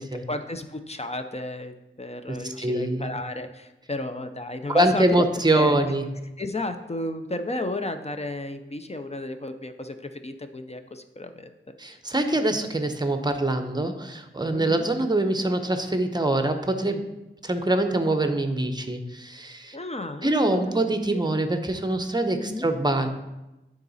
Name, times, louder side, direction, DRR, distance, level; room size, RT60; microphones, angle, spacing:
voice 1, 0.0-5.2 5.5-5.9 6.4-12.0 12.5-12.6 14.5-14.9 19.7-21.2 22.4-22.7, left 2 dB, 30° left, 8 dB, 0.5 m, -33 dB
voice 2, 2.3-3.1 4.7-6.0 11.8-17.0 17.4-19.8 20.2-23.1, right 1 dB, 20° right, 7 dB, 0.7 m, -24 dB
9.8 x 4.0 x 4.1 m, 0.99 s
wide cardioid pair, 60°, 21 cm